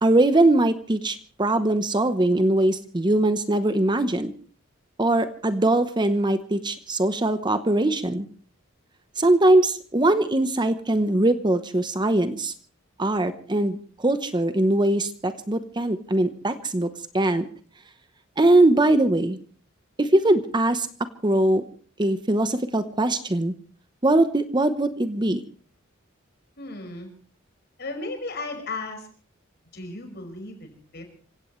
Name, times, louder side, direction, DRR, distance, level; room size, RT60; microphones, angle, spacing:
voice 1, 0.0-4.3 5.0-8.3 9.2-12.5 13.0-17.5 18.4-19.4 20.0-20.9 21.2-21.6 22.0-23.5 24.0-25.4, right 1 dB, 20° right, 10 dB, 0.9 m, -21 dB
voice 2, 26.6-27.1 27.8-29.1 29.7-31.0, left 3 dB, 55° left, 4 dB, 5.7 m, -35 dB
27.0 x 16.5 x 3.2 m, 0.43 s
head